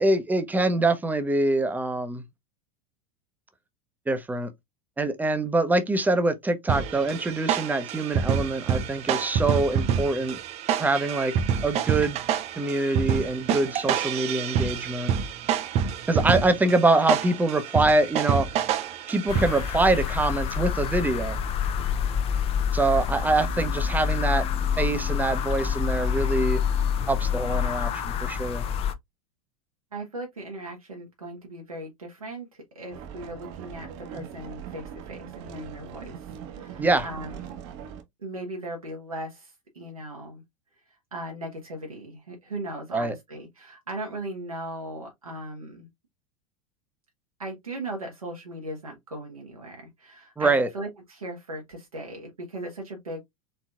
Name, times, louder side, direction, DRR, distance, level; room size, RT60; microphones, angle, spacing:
voice 1, 0.0-2.2 4.1-4.5 5.0-10.4 10.8-11.3 11.6-12.2 12.6-15.1 16.1-18.5 19.1-21.4 22.7-24.4 24.8-26.6 27.1-28.6 36.8-37.1 42.9-43.2 50.4-50.7, right 2 dB, 10° right, 0.8 m, -24 dB
sound 1, 6.7-19.8, right 8 dB, 35° right, 0.6 m, -27 dB
sound 2, 19.3-28.9, left 7 dB, 35° left, 0.7 m, -27 dB
voice 2, 29.9-37.4 38.2-40.4 41.1-45.9 47.4-53.2, right 1 dB, 85° right, 1.5 m, -38 dB
sound 3, 32.9-38.0, right 8 dB, 55° right, 1.2 m, -41 dB
4.2 x 3.9 x 2.4 m
figure-of-eight pair, 85°, 18 cm